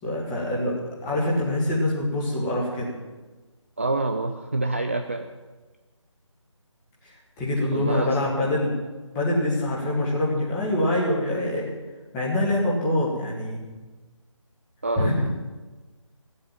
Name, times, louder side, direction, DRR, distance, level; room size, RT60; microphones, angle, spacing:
voice 1, 0.0-2.9 7.0-8.7 9.1-11.6 12.1-13.6 15.0-15.1, left 1 dB, 10° left, -5 dB, 2.1 m, -25 dB
voice 2, 3.8-5.3 7.7-8.1 14.8-15.3, right 2 dB, 25° right, 5 dB, 0.4 m, -27 dB
15.5 x 7.8 x 7.5 m, 1.3 s
figure-of-eight pair, 160°, 17 cm